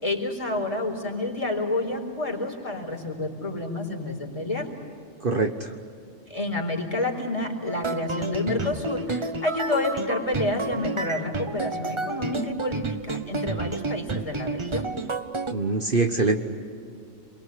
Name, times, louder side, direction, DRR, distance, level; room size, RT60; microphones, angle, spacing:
voice 1, 0.0-4.7 6.3-14.9, left 2 dB, 25° left, 0 dB, 4.5 m, -29 dB
voice 2, 5.2-5.7 15.5-16.3, right 3 dB, 45° right, 4 dB, 1.4 m, -23 dB
sound 1, 7.7-15.5, right 3 dB, 25° right, 1.0 m, -30 dB
28.5 x 23.0 x 8.4 m, 2.4 s
omnidirectional pair, 1.3 m